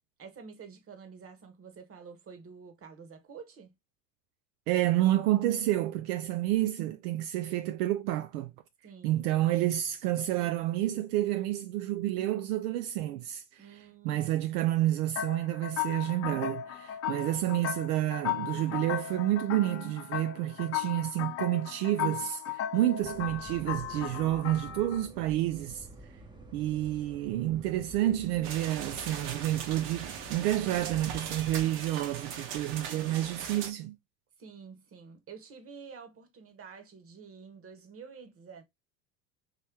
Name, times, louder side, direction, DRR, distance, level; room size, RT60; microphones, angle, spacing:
voice 1, 0.2-3.7 8.8-9.3 13.6-14.3 34.4-38.6, right 6 dB, 25° right, 1.1 m, -49 dB
voice 2, 4.7-8.5 9.0-13.7 14.0-25.9 26.5-34.0, right 14 dB, 70° right, 0.5 m, -29 dB
sound 1, 15.1-25.1, left 11 dB, 30° left, 0.5 m, -36 dB
sound 2, 23.0-31.6, right 1 dB, 10° right, 0.7 m, -49 dB
sound 3, 28.4-33.7, right 7 dB, 55° right, 1.1 m, -40 dB
3.1 x 3.1 x 3.4 m
hypercardioid pair, 80°, 49 cm